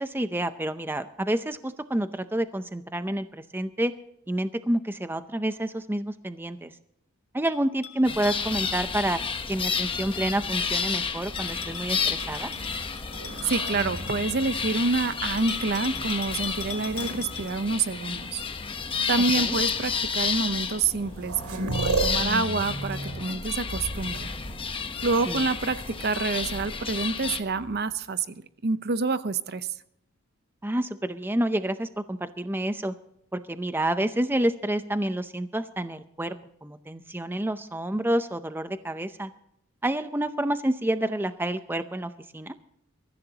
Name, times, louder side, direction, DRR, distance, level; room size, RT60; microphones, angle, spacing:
voice 1, 0.0-3.9 4.3-6.7 7.3-9.2 9.5-12.5 19.4-19.6 25.3-25.4 30.6-32.9 33.3-36.3 36.6-39.3 39.8-42.5, right 1 dB, 10° right, 0.6 m, -28 dB
Bell, 7.4-9.2 11.4-14.6 15.4-17.8, left 7 dB, 75° left, 2.2 m, -42 dB
sound 1, 8.0-27.4, left 5 dB, 25° left, 1.0 m, -31 dB
sound 2, 12.1-15.9 16.6-17.4 18.5-18.6 19.3-19.5 20.6-20.7 20.9-25.4 27.3-28.0, right 2 dB, 85° right, 3.0 m, -35 dB
voice 2, 13.4-18.4 19.1-24.3 25.0-29.7, right 4 dB, 50° right, 0.8 m, -27 dB
23.5 x 14.5 x 2.9 m
head